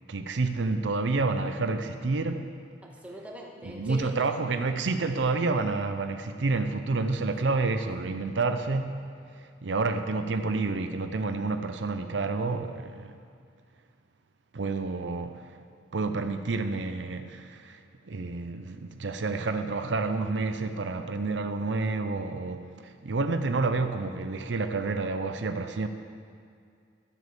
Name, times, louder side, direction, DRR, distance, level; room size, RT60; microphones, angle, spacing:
voice 1, 0.1-2.5 3.6-9.0 9.6-13.2 14.5-15.5 15.9-17.8 18.0-25.9, right 3 dB, 80° right, 8 dB, 0.6 m, -29 dB
voice 2, 2.8-4.1 4.8-4.9 7.5-7.6, equal, 10° right, -2 dB, 1.7 m, -43 dB
13.0 x 8.0 x 6.8 m, 2.3 s
head